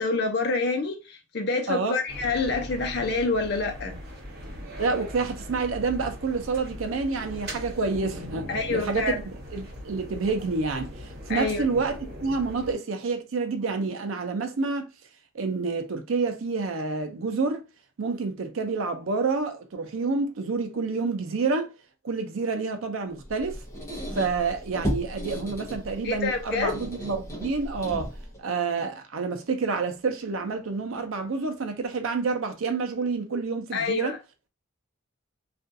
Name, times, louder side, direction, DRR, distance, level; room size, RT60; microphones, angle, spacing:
voice 1, 0.0-4.0 8.5-9.2 11.3-11.6 26.0-26.7 33.7-34.2, left 3 dB, 50° left, 0.6 m, -27 dB
voice 2, 1.7-2.0 4.8-14.9 15.3-17.7 18.0-21.7 22.0-23.6 24.1-28.1 28.4-34.1, right 4 dB, 75° right, 0.5 m, -28 dB
sound 1, 2.1-12.7, equal, 45° right, 1.2 m, -40 dB
Squeak, 23.2-28.4, equal, 15° left, 0.7 m, -35 dB
2.4 x 2.3 x 2.6 m
head